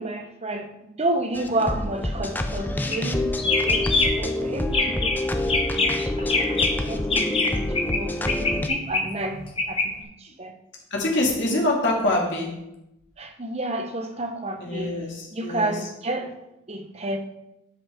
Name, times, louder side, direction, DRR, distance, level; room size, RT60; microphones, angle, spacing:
voice 1, 0.0-3.9 4.2-10.6 13.2-15.0 15.3-16.4 16.7-17.2, right 2 dB, 30° right, 0.8 m, -31 dB
sound 1, 1.3-8.7, left 1 dB, 10° left, 0.4 m, -27 dB
sound 2, 2.8-3.1 3.4-4.3 4.6-5.2 5.5-8.0 8.3-9.9, left 3 dB, 25° left, 1.0 m, -24 dB
voice 2, 10.9-12.5 14.6-15.7, left 1 dB, 55° left, 2.2 m, -24 dB
11.5 x 5.4 x 3.6 m
head